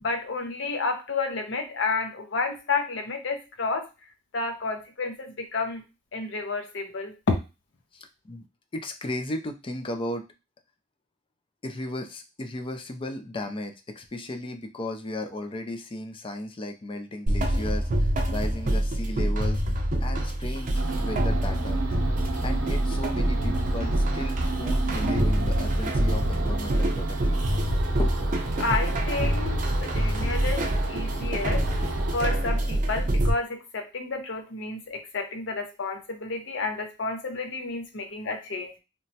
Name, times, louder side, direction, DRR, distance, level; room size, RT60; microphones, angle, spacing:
voice 1, 0.0-3.9 4.3-5.8 6.1-7.4 28.6-31.6 32.1-38.8, left 3 dB, 70° left, 5 dB, 0.6 m, -30 dB
voice 2, 7.9-8.5 8.7-10.3 11.6-19.6 20.0-21.9 22.4-27.4 28.0-28.2, left 1 dB, 25° left, 5 dB, 0.4 m, -35 dB
sound 1, 17.3-33.3, right 1 dB, 40° right, 0.5 m, -26 dB
sound 2, 20.7-32.2, right 3 dB, 85° right, 0.6 m, -34 dB
3.0 x 2.2 x 2.7 m, 0.27 s
head